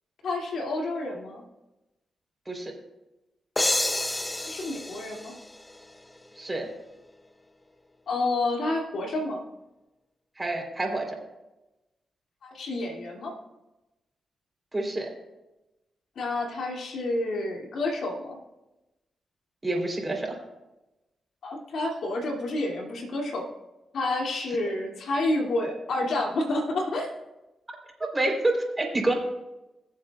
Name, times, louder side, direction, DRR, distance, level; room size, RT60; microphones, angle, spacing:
voice 1, 0.2-1.4 4.4-5.3 8.1-9.4 12.4-13.3 16.2-18.4 21.4-23.5 23.9-27.1, left 2 dB, 75° left, 0 dB, 2.4 m, -29 dB
sound 1, 3.6-6.2, left 1 dB, 15° left, 0.6 m, -29 dB
voice 2, 6.4-6.7 10.4-11.2 14.7-15.1 19.6-20.4 28.0-29.1, right 2 dB, 25° right, 1 dB, 3.5 m, -28 dB
21.5 x 7.4 x 2.4 m, 1.0 s
cardioid pair, 60°, 0 cm